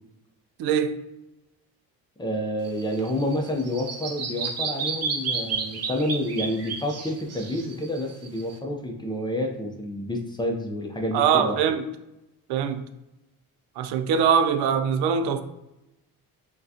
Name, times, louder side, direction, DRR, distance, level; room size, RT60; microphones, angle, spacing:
voice 1, 0.6-1.0 11.1-11.8 12.5-12.8 13.8-15.4, right 7 dB, 85° right, 0.6 m, -22 dB
voice 2, 2.2-11.6, left 1 dB, 10° left, 0.5 m, -29 dB
Bird vocalization bird call bird song, 2.6-8.5, right 5 dB, 40° right, 0.7 m, -32 dB
6.2 x 2.3 x 2.8 m
cardioid pair, 120°, 38 cm